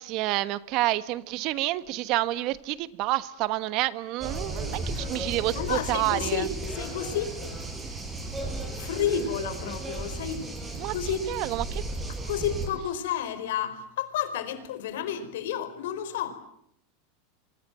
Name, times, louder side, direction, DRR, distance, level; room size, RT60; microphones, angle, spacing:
voice 1, 0.0-6.4 10.8-10.9 11.3-11.8, right 17 dB, 50° right, 1.2 m, -28 dB
sound 1, 4.2-12.7, right 2 dB, 15° right, 7.7 m, -35 dB
voice 2, 4.5-5.2 5.5-7.3 8.8-10.4 10.9-11.2 12.1-16.4, left 9 dB, 80° left, 4.8 m, -31 dB
28.0 x 25.0 x 7.6 m
supercardioid pair, 135°, 0 cm